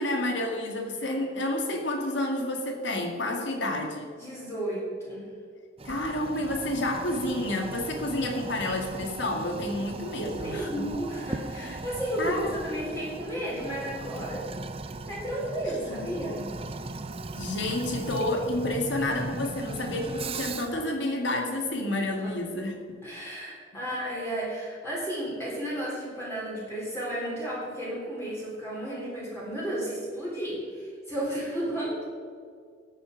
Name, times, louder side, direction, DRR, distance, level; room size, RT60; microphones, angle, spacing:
voice 1, 0.0-4.1 5.9-10.9 11.5-11.8 12.2-12.5 15.9-16.0 17.4-23.0, left 1 dB, 70° left, 2 dB, 2.1 m, -30 dB
voice 2, 4.2-5.3 8.1-9.4 10.1-14.4 15.1-16.5 19.7-19.8 22.1-22.4 23.0-32.1, right 1 dB, 15° left, -7 dB, 3.8 m, -33 dB
Toilet flush, 5.8-20.8, right 3 dB, 30° right, 0.5 m, -38 dB
14.0 x 8.8 x 5.1 m, 2.1 s
head